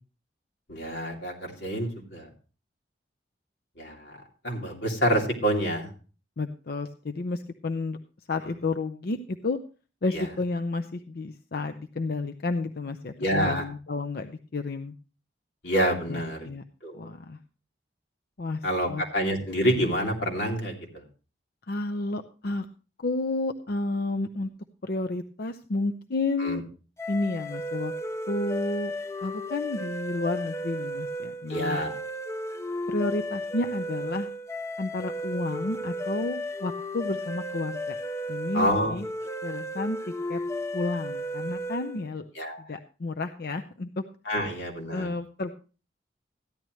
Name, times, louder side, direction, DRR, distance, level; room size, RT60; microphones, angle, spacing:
voice 1, 0.7-2.3 3.8-5.9 8.4-8.5 10.1-10.3 13.2-13.7 15.6-16.5 16.8-17.1 18.6-21.0 26.4-26.6 31.5-31.9 38.5-39.5 42.3-42.6 44.3-45.1, equal, 90° left, 0 dB, 2.8 m, -28 dB
voice 2, 6.4-8.0 8.3-9.6 10.0-14.9 16.1-16.6 17.0-17.4 18.4-18.6 18.9-19.0 21.7-22.7 23.0-24.5 24.8-26.6 27.1-27.9 28.3-28.9 29.2-31.8 32.9-34.3 34.8-38.0 38.3-39.1 39.4-40.0 40.3-40.4 40.7-42.2 42.6-44.0 44.4-44.5 44.9-45.5, left 2 dB, 60° left, 7 dB, 0.6 m, -31 dB
sound 1, 27.0-42.0, equal, 15° left, 0.6 m, -34 dB
14.0 x 10.5 x 3.1 m, 0.35 s
head